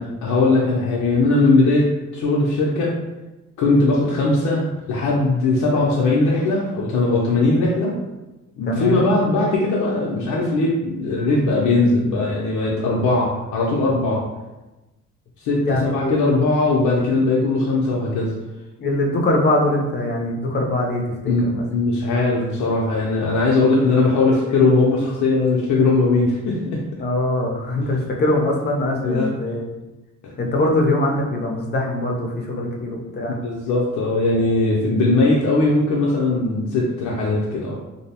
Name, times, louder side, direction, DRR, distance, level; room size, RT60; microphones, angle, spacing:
voice 1, 0.0-2.9 3.6-8.0 8.6-14.2 15.4-18.3 21.3-26.8 27.8-27.9 29.0-29.3 30.2-30.3 32.5-32.6 33.3-37.8, left 2 dB, 80° left, -4 dB, 0.5 m, -19 dB
voice 2, 8.7-9.0 15.7-16.2 18.8-21.6 27.0-29.7 30.4-33.4, left 1 dB, 35° left, 0 dB, 0.6 m, -22 dB
2.6 x 2.0 x 2.8 m, 1.1 s
cardioid pair, 90°, 30 cm